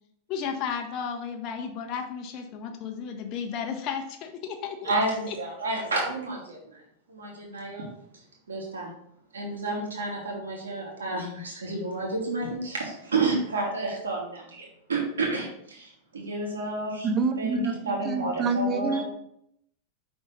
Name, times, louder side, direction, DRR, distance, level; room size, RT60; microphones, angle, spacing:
voice 1, 0.3-4.9 5.3-5.4, left 7 dB, 40° left, 3 dB, 0.7 m, -33 dB
voice 2, 4.8-6.8 7.1-7.9 8.5-8.9 9.3-17.1 17.4-19.0, right 2 dB, 70° right, -1 dB, 1.6 m, -30 dB
voice 3, 17.0-19.0, right 3 dB, 30° right, 8 dB, 0.7 m, -27 dB
5.3 x 3.5 x 5.3 m, 0.73 s
figure-of-eight pair, 90°, 0 cm